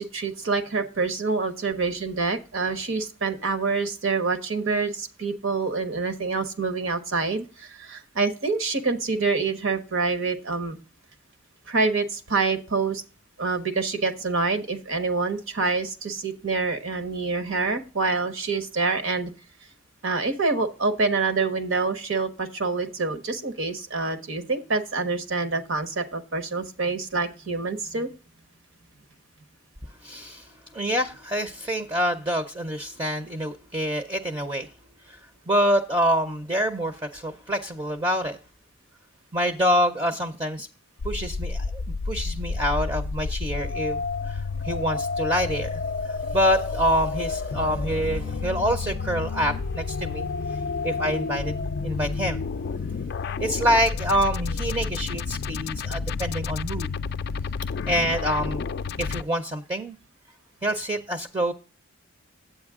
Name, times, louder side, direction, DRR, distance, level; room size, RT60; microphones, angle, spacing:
voice 1, 0.0-10.8 11.7-13.0 13.4-19.3 20.0-28.1, right 4 dB, 65° right, 10 dB, 1.1 m, -26 dB
voice 2, 30.0-30.5 30.7-34.7 35.1-35.2 35.5-38.4 39.3-40.7 41.0-41.8 42.1-44.0 44.3-44.4 44.6-50.3 50.8-51.6 51.8-52.4 53.4-56.9 57.9-58.6 59.0-60.0 60.6-61.5, equal, 20° right, 7 dB, 0.6 m, -26 dB
sound 1, 41.0-59.2, left 4 dB, 50° left, 0.3 m, -30 dB
8.9 x 8.3 x 3.6 m, 0.34 s
head